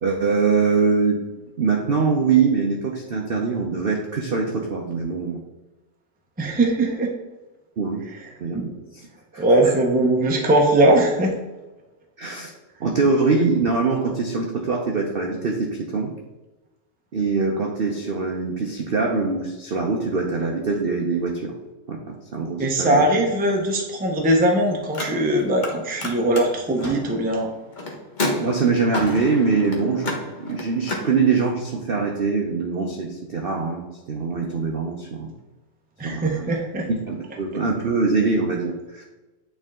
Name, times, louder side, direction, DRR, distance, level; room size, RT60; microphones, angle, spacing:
voice 1, 0.0-1.2 1.6-5.4 7.8-8.0 8.4-9.1 9.3-9.7 12.2-12.5 12.8-16.1 17.1-21.5 21.9-23.1 28.3-35.3 36.0-36.5 36.9-39.0, right 4 dB, 55° right, 0 dB, 0.6 m, -23 dB
voice 2, 6.4-7.1 8.5-8.6 9.4-11.3 22.6-27.5 36.0-36.9, right 1 dB, 10° right, 1 dB, 0.5 m, -20 dB
Car, 24.8-25.7 26.0-31.1, left 2 dB, 35° left, 0.9 m, -30 dB
9.0 x 3.7 x 3.7 m, 1.1 s
omnidirectional pair, 1.9 m